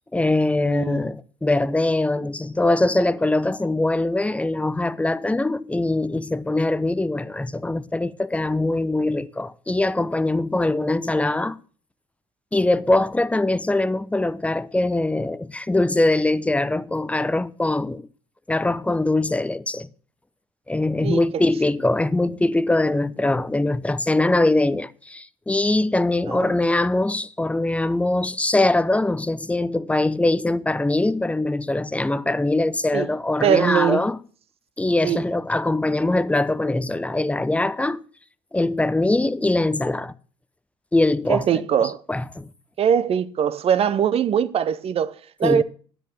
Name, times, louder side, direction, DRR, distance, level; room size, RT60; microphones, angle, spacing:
voice 1, 0.1-11.6 12.5-18.1 18.5-19.9 20.7-34.2 34.8-38.0 38.5-40.1 40.9-41.6 42.1-42.5 45.4-45.6, left 2 dB, 10° left, 0.6 m, -22 dB
voice 2, 0.7-1.0 21.0-21.4 26.3-26.6 32.9-33.1 33.4-34.1 35.0-35.2 41.3-42.0 42.8-45.6, right 8 dB, 45° right, 0.8 m, -22 dB
10.5 x 8.1 x 6.1 m
figure-of-eight pair, 50°, 15 cm